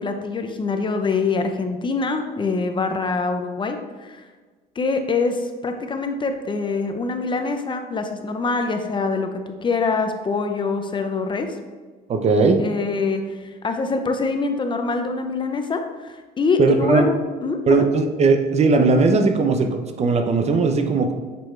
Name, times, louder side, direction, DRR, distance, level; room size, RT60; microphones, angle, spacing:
voice 1, 0.0-4.3 4.8-11.6 12.6-17.9, left 4 dB, 30° left, 6 dB, 0.6 m, -24 dB
voice 2, 12.1-12.6 16.6-17.1 17.7-21.1, right 3 dB, 40° right, 6 dB, 0.6 m, -18 dB
6.8 x 4.6 x 3.2 m, 1.4 s
cardioid pair, 110°, 17 cm